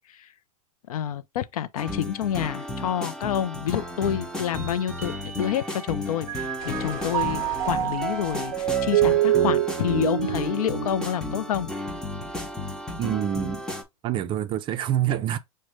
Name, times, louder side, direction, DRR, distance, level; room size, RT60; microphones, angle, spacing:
voice 1, 0.9-11.7, left 10 dB, 85° left, 0.4 m, -28 dB
sound 1, 1.8-13.8, left 2 dB, 5° left, 0.7 m, -34 dB
Mallet percussion, 4.6-5.9 6.3-11.7, right 13 dB, 90° right, 0.4 m, -27 dB
sound 2, 6.6-11.4, left 3 dB, 45° left, 1.2 m, -43 dB
voice 2, 13.0-13.6 14.0-15.4, right 11 dB, 25° right, 0.4 m, -26 dB
5.0 x 2.2 x 3.0 m
hypercardioid pair, 120°, 18 cm